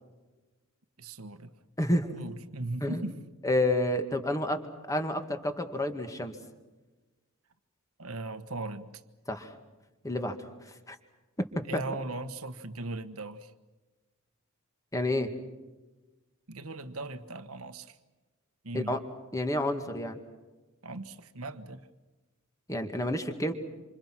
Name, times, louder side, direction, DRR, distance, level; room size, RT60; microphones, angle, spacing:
voice 1, 1.0-1.5 2.1-3.2 8.0-8.9 11.6-13.5 16.5-18.0 18.6-19.0 20.8-21.9, right 2 dB, 85° right, 10 dB, 1.5 m, -38 dB
voice 2, 1.8-2.1 2.8-3.0 3.4-4.6 4.9-6.4 9.3-9.5 10.0-11.0 14.9-15.3 18.7-19.0 19.3-20.2 22.7-23.5, left 1 dB, 15° left, 6 dB, 2.1 m, -29 dB
27.5 x 27.0 x 6.2 m, 1.2 s
head